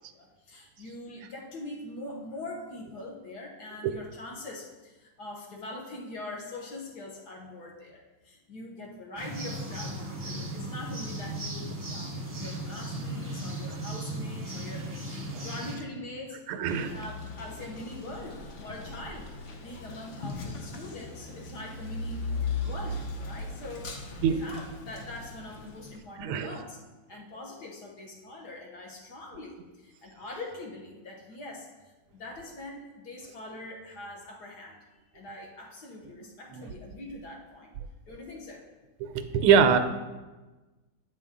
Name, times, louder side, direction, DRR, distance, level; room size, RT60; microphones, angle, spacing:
voice 1, 0.0-19.3 19.6-26.8 27.1-31.7 32.1-34.9 35.1-37.7 38.1-38.6, left 2 dB, 60° left, 0 dB, 1.3 m, -43 dB
sound 1, 9.2-15.8, right 1 dB, 25° right, 0.8 m, -36 dB
voice 2, 16.5-16.9 24.2-24.4 26.2-26.6 36.5-36.7 39.0-39.8, right 7 dB, 90° right, 8 dB, 1.5 m, -23 dB
Male speech man speaking, 16.6-26.0, left 3 dB, 90° left, 0.6 m, -38 dB
8.3 x 5.3 x 3.6 m, 1.2 s
omnidirectional pair, 2.3 m